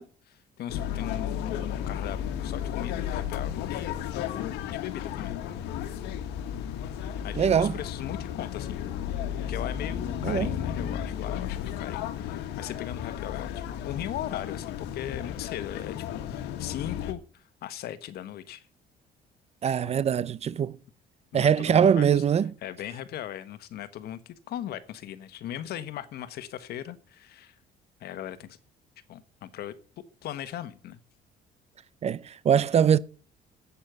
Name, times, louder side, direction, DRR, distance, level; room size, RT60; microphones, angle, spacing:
voice 1, 0.0-5.4 7.2-8.9 9.5-18.7 19.8-20.1 21.3-22.2 22.6-27.5 28.0-28.6 29.1-29.7 30.2-31.0, left 11 dB, 70° left, 1.3 m, -38 dB
sound 1, 0.7-17.1, left 9 dB, 90° left, 1.5 m, -33 dB
voice 2, 7.4-7.7 10.2-10.5 19.6-20.8 21.3-22.5 32.0-33.0, right 8 dB, 40° right, 0.6 m, -22 dB
8.6 x 8.3 x 9.3 m
cardioid pair, 110°, 17 cm